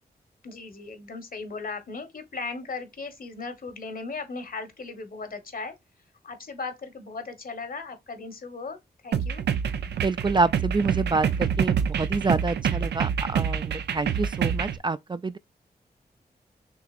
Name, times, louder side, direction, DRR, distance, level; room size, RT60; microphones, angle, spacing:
voice 1, 0.4-5.8 6.2-9.4, left 4 dB, 60° left, 1.3 m, -37 dB
sound 1, 9.1-14.8, right 8 dB, 90° right, 0.5 m, -27 dB
voice 2, 10.0-15.4, right 3 dB, 30° right, 0.4 m, -27 dB
6.1 x 2.9 x 2.5 m
cardioid pair, 50°, 17 cm